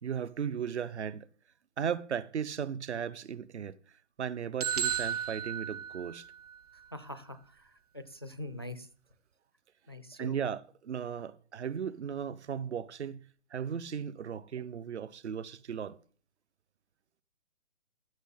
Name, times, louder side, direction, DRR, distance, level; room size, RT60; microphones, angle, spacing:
voice 1, 0.0-1.3 1.8-3.8 4.2-6.3 10.2-16.0, right 7 dB, 65° right, 0.9 m, -36 dB
sound 1, 4.6-6.5, right 8 dB, 30° right, 0.9 m, -34 dB
voice 2, 6.9-7.4 7.9-8.9 9.9-10.4, left 1 dB, 20° left, 0.4 m, -42 dB
14.0 x 6.6 x 5.6 m
hypercardioid pair, 170°, 36 cm